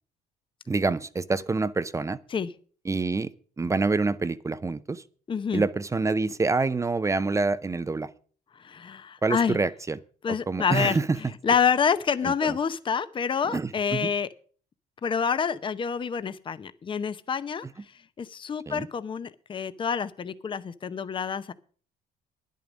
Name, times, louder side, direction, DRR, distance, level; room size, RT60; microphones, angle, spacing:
voice 1, 0.7-2.2 2.9-3.3 3.6-5.0 5.5-8.1 9.2-10.0 10.3-11.2 12.2-12.6 13.5-14.1 18.7-18.9, right 3 dB, 20° right, 16 dB, 0.6 m, -26 dB
voice 2, 5.3-5.6 8.6-9.6 10.2-11.0 11.4-14.3 15.0-17.6 18.2-21.5, left 6 dB, 30° left, 14 dB, 0.7 m, -27 dB
10.5 x 9.3 x 6.3 m, 0.43 s
cardioid pair, 110°, 17 cm